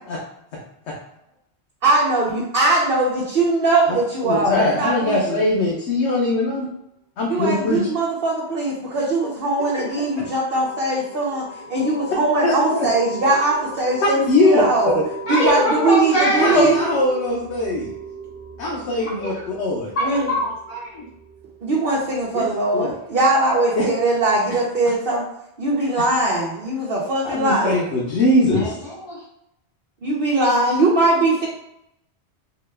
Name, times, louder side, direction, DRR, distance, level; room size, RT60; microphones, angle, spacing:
voice 1, 1.8-5.4 7.3-15.0 15.3-16.8 20.0-20.3 21.6-25.2 25.6-27.8 30.0-31.5, right 2 dB, 60° right, -4 dB, 0.9 m, -20 dB
voice 2, 4.2-6.7 7.2-7.8 12.4-12.9 14.3-14.6 16.4-17.9 18.6-19.9 22.3-22.9 23.7-23.9 27.2-28.7, left 2 dB, 80° left, -3 dB, 1.0 m, -21 dB
sound 1, 8.9-23.0, right 3 dB, 30° right, 1.0 m, -38 dB
voice 3, 15.3-16.7 19.0-19.4 19.9-21.1 28.5-29.2, equal, 50° left, -8 dB, 1.7 m, -23 dB
4.3 x 2.2 x 3.2 m, 0.80 s
omnidirectional pair, 1.1 m